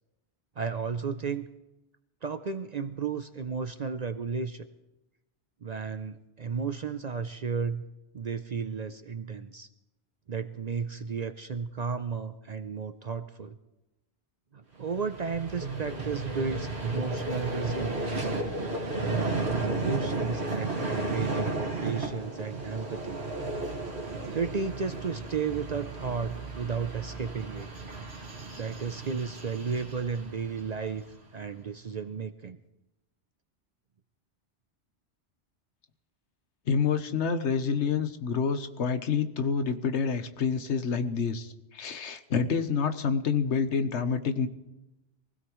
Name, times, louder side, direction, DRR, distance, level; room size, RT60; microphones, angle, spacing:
voice 1, 0.6-1.5 2.2-4.7 5.6-7.8 8.1-9.7 10.3-13.6 14.5-18.3 19.1-23.2 24.3-27.7 28.5-31.0 31.3-32.6, right 5 dB, 45° right, 11 dB, 0.6 m, -33 dB
Vehicle, 14.8-31.1, right 2 dB, 70° right, 2.2 m, -34 dB
voice 2, 36.7-44.5, left 6 dB, 80° left, 9 dB, 1.3 m, -28 dB
23.5 x 16.5 x 3.1 m, 0.99 s
omnidirectional pair, 1.2 m